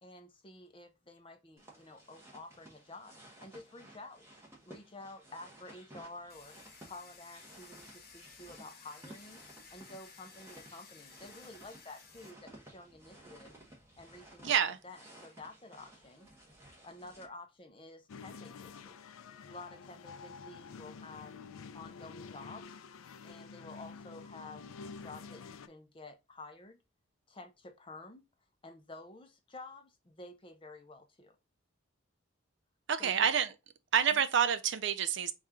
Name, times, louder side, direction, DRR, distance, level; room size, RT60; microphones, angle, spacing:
voice 1, 0.0-9.4 9.7-13.5 14.0-14.5 14.8-16.3 16.8-19.0 19.5-21.4 21.7-22.8 23.2-24.7 24.9-26.8 27.3-28.2 28.6-31.4 33.0-33.3 34.1-34.2, left 2 dB, 25° left, 0.5 m, -51 dB
sound 1, 1.6-17.3, right 1 dB, 15° right, 1.0 m, -56 dB
Domestic sounds home sounds, 6.3-12.3, left 5 dB, 45° left, 0.9 m, -56 dB
voice 2, 14.4-14.8 32.9-33.5 33.9-35.3, right 8 dB, 60° right, 0.4 m, -28 dB
sound 2, 18.1-25.7, left 5 dB, 85° left, 0.4 m, -49 dB
4.2 x 2.4 x 3.6 m
head